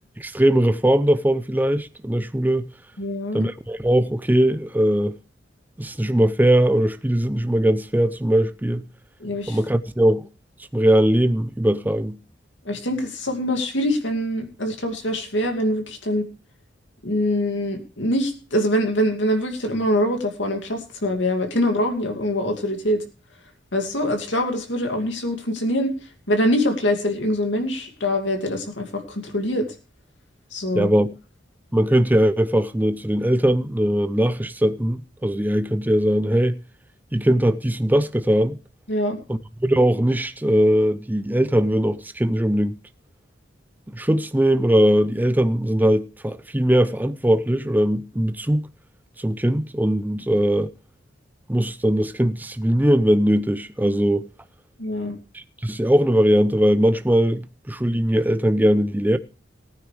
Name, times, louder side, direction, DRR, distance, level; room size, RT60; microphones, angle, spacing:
voice 1, 0.2-2.7 3.3-5.2 5.8-8.8 9.5-10.3 10.7-12.2 30.7-31.1 31.7-36.6 37.1-38.6 39.3-42.8 43.9-48.7 49.2-50.7 51.5-54.3 55.3-59.2, right 1 dB, 10° right, 0.5 m, -20 dB
voice 2, 3.0-3.5 9.2-9.6 12.6-16.2 17.0-23.0 23.7-25.9 26.3-29.7 30.5-30.9 38.9-39.2 54.8-55.2, left 1 dB, 70° left, 2.6 m, -24 dB
18.5 x 9.6 x 3.4 m
head